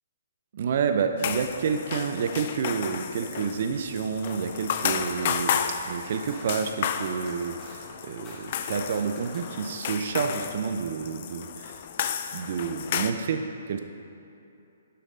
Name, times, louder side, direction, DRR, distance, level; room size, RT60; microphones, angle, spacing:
voice 1, 0.5-11.8 12.3-13.8, right 6 dB, 55° right, 6 dB, 0.4 m, -29 dB
sound 1, 1.2-13.1, left 8 dB, 50° left, 0.3 m, -32 dB
sound 2, 3.5-9.6, left 2 dB, 25° left, 1.0 m, -48 dB
6.7 x 5.3 x 3.8 m, 2.7 s
hypercardioid pair, 140°, 0 cm